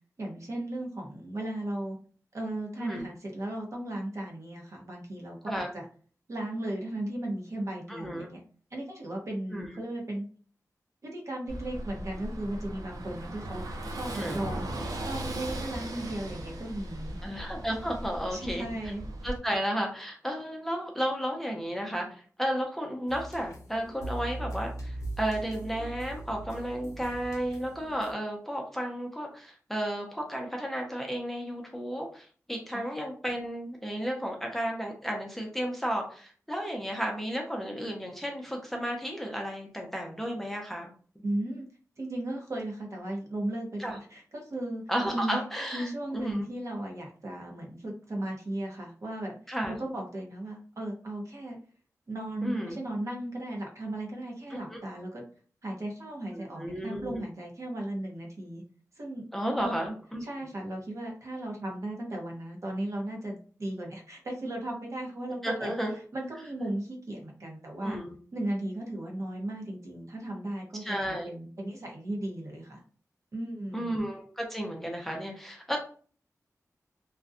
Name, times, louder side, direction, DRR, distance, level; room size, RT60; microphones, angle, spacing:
voice 1, 0.2-2.0 2.3-5.8 6.3-8.4 8.7-10.3 11.0-14.7 15.0-17.2 18.3-19.0 32.7-32.9 41.2-41.7 42.0-44.8 45.1-49.4 49.7-51.6 52.1-55.2 55.6-58.6 59.0-59.2 59.6-59.8 60.2-65.7 66.1-68.0 68.3-72.8 73.3-73.9, right 1 dB, 55° right, 0 dB, 0.7 m, -36 dB
voice 2, 7.9-8.3 9.5-9.7 14.1-14.5 17.2-18.6 19.2-40.9 43.8-43.9 44.9-45.9 46.1-46.4 49.5-49.8 52.4-52.8 54.7-54.8 56.3-57.2 59.3-60.2 65.4-66.0 67.8-68.1 70.8-71.3 73.7-75.8, equal, 5° left, 1 dB, 0.5 m, -33 dB
Car passing by / Engine, 11.5-19.4, right 1 dB, 80° right, 0.4 m, -38 dB
sound 1, 23.1-28.1, right 2 dB, 60° left, 0.6 m, -40 dB
2.5 x 2.1 x 2.4 m, 0.42 s
wide cardioid pair, 105°, 6 cm